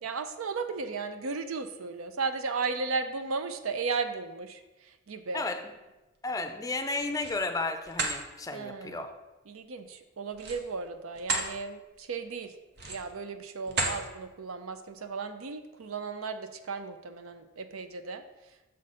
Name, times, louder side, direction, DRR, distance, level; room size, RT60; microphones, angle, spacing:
voice 1, 0.0-5.5 8.5-9.1 9.5-12.5 12.9-18.2, right 4 dB, 85° right, 9 dB, 0.5 m, -35 dB
voice 2, 6.2-9.1, left 3 dB, 15° left, 6 dB, 0.5 m, -33 dB
sound 1, 6.8-7.4 7.8-8.2 10.3-11.5 12.0-12.1 12.7-13.2 13.7-14.0, right 3 dB, 55° right, 0.9 m, -32 dB
6.6 x 5.0 x 4.2 m, 1.1 s
head